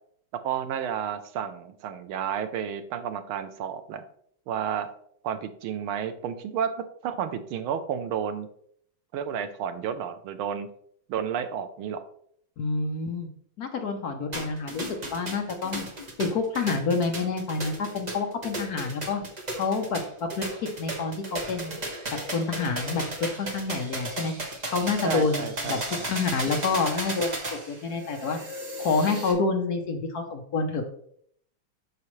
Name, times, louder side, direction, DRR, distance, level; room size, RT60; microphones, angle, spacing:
voice 1, 0.4-4.0 4.5-4.9 5.2-8.5 9.1-10.7 11.1-12.0 25.0-26.1, right 8 dB, 85° right, 9 dB, 1.6 m, -31 dB
voice 2, 12.6-13.3 13.6-14.9 15.1-15.9 16.2-19.2 19.6-21.7 22.1-24.3 24.7-25.8 26.0-30.9, left 4 dB, 60° left, 5 dB, 1.1 m, -28 dB
sound 1, 14.3-29.3, right 1 dB, 25° right, 1.2 m, -35 dB
8.4 x 6.2 x 3.1 m, 0.65 s
omnidirectional pair, 2.3 m